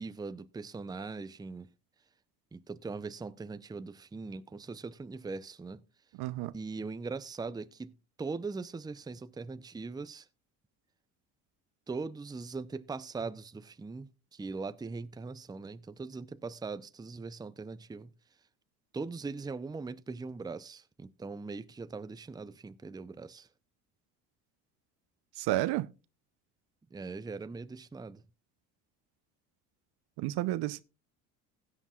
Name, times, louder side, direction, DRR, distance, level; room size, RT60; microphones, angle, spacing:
voice 1, 0.0-1.7 2.5-5.8 6.5-7.9 8.2-10.3 11.9-18.1 18.9-23.5 26.9-28.2, right 4 dB, 10° right, 0.6 m, -40 dB
voice 2, 6.2-6.5 25.4-25.9 30.2-30.8, right 16 dB, 65° right, 0.7 m, -31 dB
16.0 x 9.9 x 2.4 m
hypercardioid pair, 70°, 43 cm